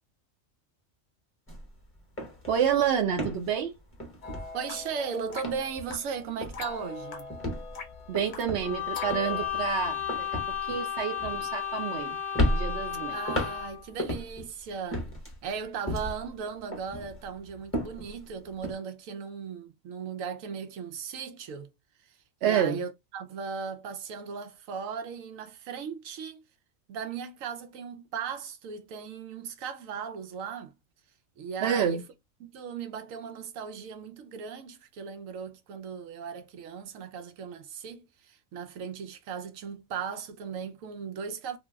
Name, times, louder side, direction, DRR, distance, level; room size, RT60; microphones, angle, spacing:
sound 1, 1.5-1.7 2.0-5.0 5.3-6.1 6.4-6.8 7.3-12.0 12.3-14.5 14.9-16.3 16.7-18.7, left 1 dB, 10° left, 0.8 m, -34 dB
voice 1, 2.5-3.7 8.1-12.2 12.5-13.2 22.4-22.8 31.6-32.0, right 8 dB, 60° right, 0.8 m, -28 dB
sound 2, 4.2-9.5, left 5 dB, 80° left, 0.3 m, -43 dB
voice 2, 4.5-7.3 13.1-15.1 15.4-21.7 22.0-22.2 22.4-26.4 26.9-30.7 31.4-32.0 32.4-41.6, right 6 dB, 90° right, 1.0 m, -37 dB
sound 3, 8.6-13.9, left 10 dB, 55° left, 0.8 m, -33 dB
2.6 x 2.0 x 3.4 m
omnidirectional pair, 1.4 m